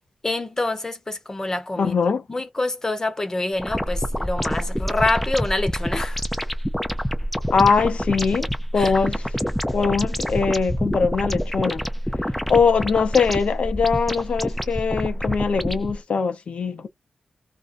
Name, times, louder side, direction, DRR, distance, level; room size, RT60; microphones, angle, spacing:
voice 1, 0.2-1.9 2.3-6.2 8.7-8.9, left 2 dB, 25° left, 0.8 m, -26 dB
voice 2, 1.8-2.2 7.5-9.2 9.7-11.8 12.5-16.9, left 5 dB, 70° left, 0.6 m, -21 dB
sound 1, 3.6-15.9, equal, 5° left, 0.4 m, -27 dB
2.4 x 2.1 x 2.5 m
wide cardioid pair, 85°, 2 cm